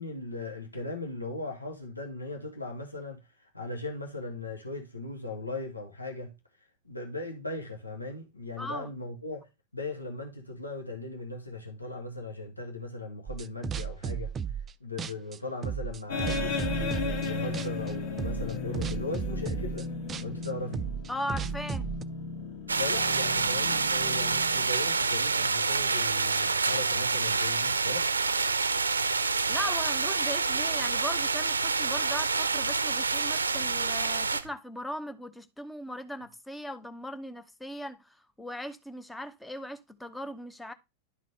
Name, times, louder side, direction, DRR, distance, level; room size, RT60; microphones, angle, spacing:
voice 1, 0.0-6.3 6.8-9.4 9.7-14.3 14.8-19.9 20.2-20.9 22.8-28.1, left 2 dB, 85° left, 1.3 m, -38 dB
voice 2, 8.6-8.9 21.1-21.9 29.5-40.7, equal, 5° left, 0.7 m, -38 dB
sound 1, 13.3-14.7 15.0-17.3 17.5-17.9 18.2-22.0, right 7 dB, 25° right, 0.3 m, -34 dB
sound 2, 16.1-25.0, left 4 dB, 55° left, 1.6 m, -35 dB
sound 3, 22.7-34.4, right 4 dB, 75° right, 0.6 m, -27 dB
11.5 x 3.9 x 3.2 m
figure-of-eight pair, 90°, 0 cm